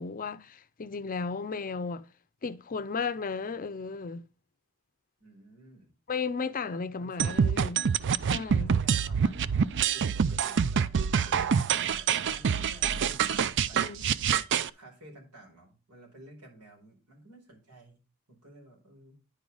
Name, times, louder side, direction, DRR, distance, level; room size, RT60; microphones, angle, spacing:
voice 1, 0.0-2.1 2.4-4.2 6.1-7.9 8.2-8.8 13.8-14.2, left 5 dB, 40° left, 0.5 m, -34 dB
voice 2, 5.2-5.9 6.7-7.2 8.6-14.2 14.7-18.0 18.3-19.2, right 1 dB, 85° right, 4.5 m, -53 dB
sound 1, 7.2-14.7, right 7 dB, 55° right, 0.4 m, -26 dB
10.0 x 4.8 x 3.9 m
head